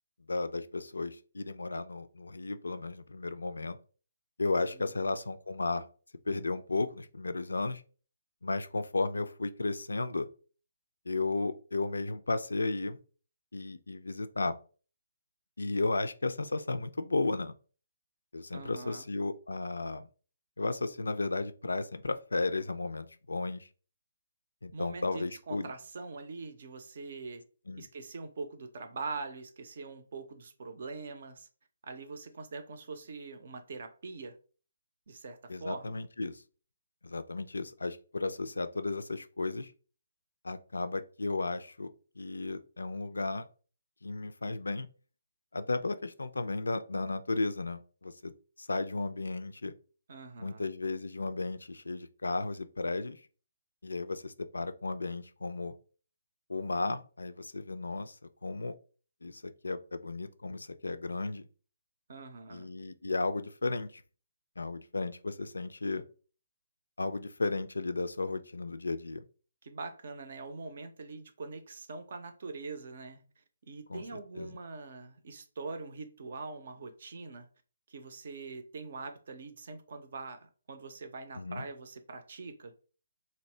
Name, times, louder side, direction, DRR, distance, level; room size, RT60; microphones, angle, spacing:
voice 1, 0.3-3.8 4.4-5.8 6.3-7.8 8.4-10.3 11.1-13.0 13.5-14.6 15.6-17.5 18.3-20.0 20.6-23.7 24.6-25.7 27.7-27.9 35.5-36.4 37.0-39.7 40.4-43.5 44.0-44.9 45.5-48.3 48.6-49.7 50.4-53.2 53.8-55.7 56.5-58.2 58.4-58.7 59.2-61.4 62.5-64.0 64.6-66.0 67.0-69.2 73.9-74.0 74.4-74.5 81.4-81.7, left 3 dB, 75° left, 0.3 m, -34 dB
voice 2, 18.5-19.1 24.7-27.4 27.7-31.5 31.9-34.4 35.1-36.0 50.1-50.7 62.1-62.7 69.6-77.5 77.9-82.7, right 4 dB, 55° right, 0.5 m, -43 dB
2.7 x 2.0 x 3.2 m
figure-of-eight pair, 140°, 0 cm